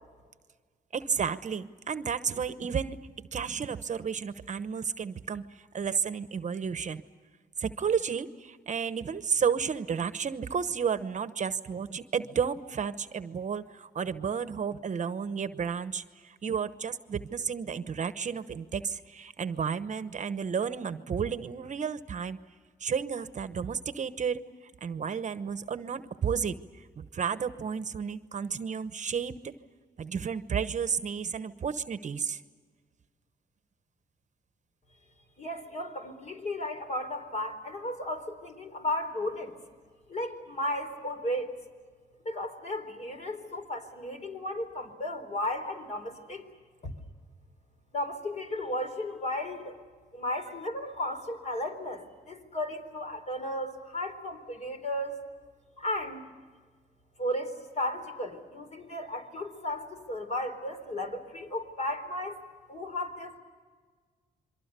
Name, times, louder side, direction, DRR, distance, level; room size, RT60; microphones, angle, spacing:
voice 1, 0.9-7.0 7.6-22.4 22.8-24.4 24.8-29.5 30.0-32.4, right 6 dB, 45° right, 12 dB, 1.0 m, -32 dB
voice 2, 35.4-39.6 40.1-41.5 42.2-46.5 46.8-46.9 47.9-49.8 50.1-55.2 55.8-56.2 57.2-62.4 62.7-63.4, left 1 dB, 45° left, 6 dB, 4.1 m, -34 dB
28.5 x 23.5 x 6.8 m, 1.6 s
cardioid pair, 85°, 17 cm